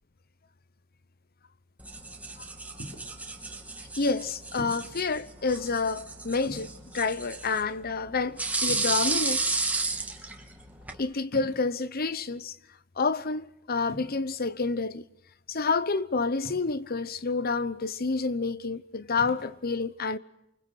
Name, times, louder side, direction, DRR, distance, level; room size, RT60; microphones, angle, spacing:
sound 1, 1.8-11.0, right 3 dB, 10° right, 2.9 m, -33 dB
sound 2, 2.8-3.2 4.6-5.0 6.4-7.0 8.7-9.4 11.3-11.8 13.9-14.1 16.4-17.0 19.1-19.5, equal, 70° left, 6.1 m, -44 dB
voice 1, 4.0-9.7 11.0-12.5 13.0-15.0 15.5-20.2, left 4 dB, 50° left, 1.0 m, -29 dB
28.5 x 25.0 x 6.5 m
head